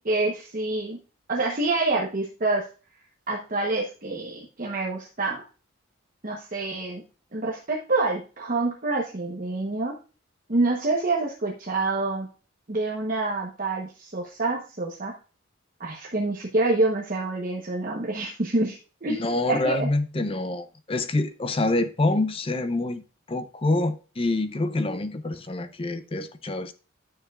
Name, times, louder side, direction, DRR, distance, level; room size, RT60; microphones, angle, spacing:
voice 1, 0.0-1.0 1.3-2.7 3.3-5.4 6.2-7.0 7.3-9.9 10.5-12.3 12.7-15.1 15.8-19.2 19.5-19.9, right 2 dB, 40° right, 1.0 m, -27 dB
voice 2, 19.1-26.7, left 2 dB, 25° left, 0.5 m, -26 dB
9.8 x 6.8 x 2.4 m
head